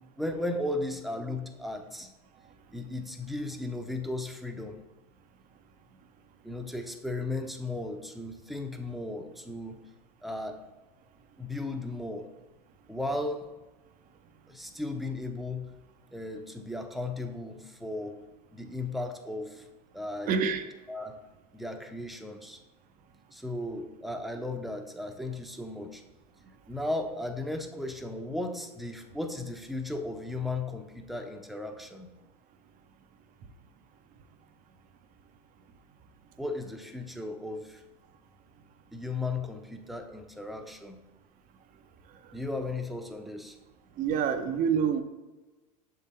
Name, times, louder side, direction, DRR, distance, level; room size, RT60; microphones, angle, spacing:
voice 1, 0.2-2.1 2.7-4.8 6.4-9.8 10.2-10.6 11.4-12.3 12.9-13.5 14.5-15.7 16.1-18.2 18.5-19.6 19.9-20.4 20.9-21.2 21.5-22.6 23.3-26.0 26.7-32.1 36.4-37.8 38.9-41.0 42.3-43.6, left 2 dB, ahead, 5 dB, 0.7 m, -35 dB
voice 2, 20.3-20.6 44.0-45.0, right 7 dB, 40° right, 8 dB, 0.6 m, -26 dB
6.5 x 3.8 x 4.1 m, 1.1 s
hypercardioid pair, 90°, 21 cm